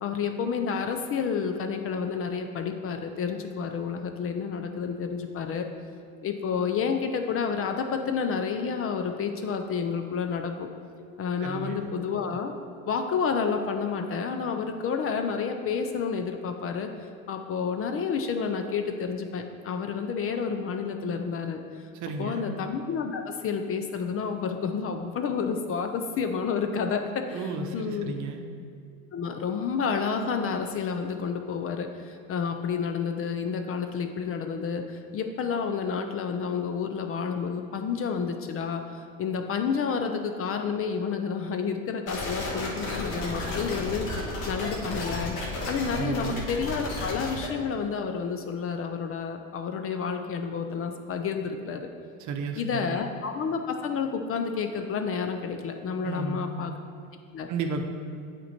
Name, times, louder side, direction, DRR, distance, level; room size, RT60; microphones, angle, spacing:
voice 1, 0.0-5.7 6.2-10.7 11.2-12.5 12.9-21.9 22.2-28.1 29.1-38.8 39.2-45.4 45.7-51.9 52.6-56.7 57.3-57.5, left 6 dB, 35° left, 5 dB, 0.5 m, -30 dB
voice 2, 11.4-11.9 21.9-22.5 27.3-28.4 46.0-46.3 52.2-53.0 56.0-56.6 57.5-57.8, right 4 dB, 45° right, 5 dB, 0.8 m, -33 dB
sound 1, 42.1-47.5, left 2 dB, 80° left, 1.7 m, -33 dB
8.2 x 4.4 x 4.4 m, 2.4 s
supercardioid pair, 100°, 40 cm